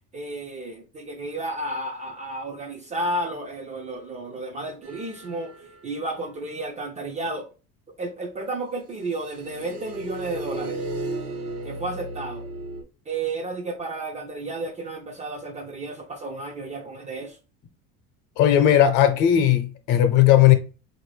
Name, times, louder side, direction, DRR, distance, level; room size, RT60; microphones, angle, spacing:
voice 1, 0.1-7.5 8.0-10.8 11.6-12.5 13.1-17.4, right 2 dB, 20° right, 0.3 m, -32 dB
sound 1, 4.8-5.8 9.1-12.8, right 2 dB, 70° right, 1.1 m, -34 dB
voice 2, 18.4-20.5, left 11 dB, 60° left, 0.7 m, -17 dB
4.2 x 2.6 x 3.2 m
cardioid pair, 140°, 35 cm